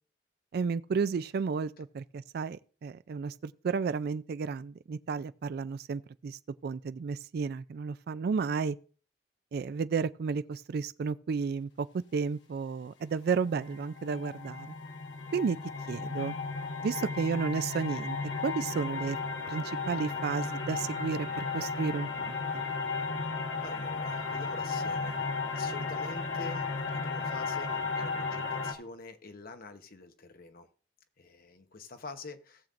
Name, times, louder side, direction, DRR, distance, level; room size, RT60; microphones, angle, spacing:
voice 1, 0.5-8.8 9.5-11.9 12.1-14.7 15.3-15.6 15.9-16.4 16.8-18.2 18.4-19.2 19.5-22.6, right 5 dB, 60° right, 0.4 m, -32 dB
sound 1, 13.4-28.7, left 4 dB, 80° left, 1.3 m, -34 dB
voice 2, 23.6-30.7 31.2-32.7, left 3 dB, 55° left, 1.0 m, -46 dB
17.5 x 7.1 x 2.5 m
head